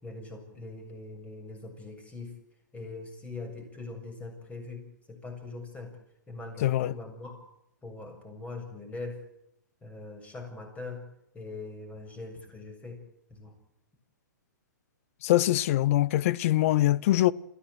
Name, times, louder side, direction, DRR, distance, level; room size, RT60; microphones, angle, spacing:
voice 1, 0.0-2.3 2.7-6.0 6.3-7.4 7.8-9.2 9.8-11.1 11.3-13.0 13.3-13.5, left 3 dB, 15° left, 7.3 m, -42 dB
voice 2, 6.6-6.9 15.2-17.3, left 15 dB, 45° left, 0.9 m, -23 dB
27.5 x 16.0 x 9.4 m
hypercardioid pair, 125°, 10 cm